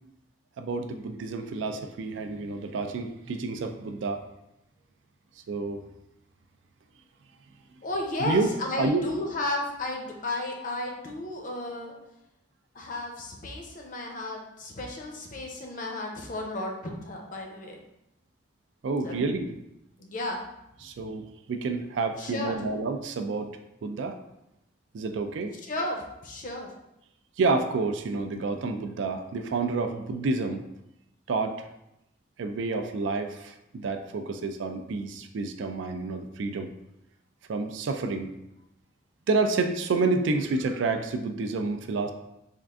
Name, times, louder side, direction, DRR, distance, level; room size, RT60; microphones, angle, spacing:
voice 1, 0.6-4.2 5.5-5.8 8.2-8.5 8.8-9.1 18.8-19.6 20.8-23.5 23.8-24.2 24.9-25.5 27.4-30.6 31.3-31.6 32.4-36.7 37.5-38.3 39.3-42.1, right 3 dB, 75° right, 7 dB, 0.3 m, -29 dB
voice 2, 7.8-11.9 12.7-17.8 19.0-19.1 20.0-20.4 22.2-22.6 25.7-26.7, left 2 dB, 40° left, 1 dB, 0.6 m, -33 dB
3.6 x 2.5 x 3.4 m, 0.85 s
head